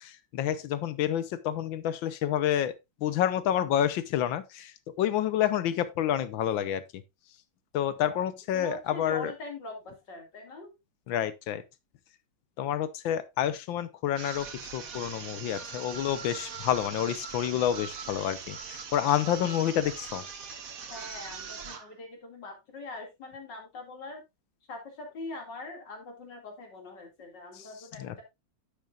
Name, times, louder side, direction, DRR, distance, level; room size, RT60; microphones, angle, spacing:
voice 1, 0.0-2.7 3.0-7.0 7.7-9.3 11.1-11.6 12.6-20.2 27.5-27.7 28.0-28.1, left 10 dB, 80° left, 1.5 m, -29 dB
voice 2, 8.5-10.7 20.9-24.2 24.7-28.2, left 2 dB, 60° left, 3.0 m, -42 dB
sound 1, 14.1-21.9, right 6 dB, 50° right, 1.5 m, -41 dB
9.9 x 8.4 x 2.4 m
omnidirectional pair, 2.1 m